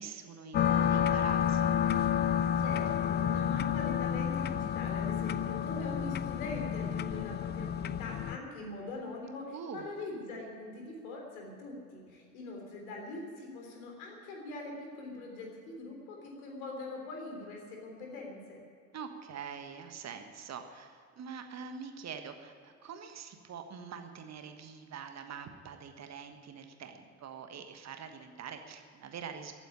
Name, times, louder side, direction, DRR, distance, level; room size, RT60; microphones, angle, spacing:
voice 1, 0.0-1.8 9.5-9.9 18.9-29.5, right 6 dB, 35° right, 7 dB, 1.4 m, -44 dB
sound 1, 0.5-8.4, left 9 dB, 25° left, 0.5 m, -30 dB
voice 2, 2.6-18.6, left 2 dB, 65° left, 1 dB, 3.5 m, -43 dB
15.0 x 9.1 x 9.7 m, 2.4 s
figure-of-eight pair, 60°, 44 cm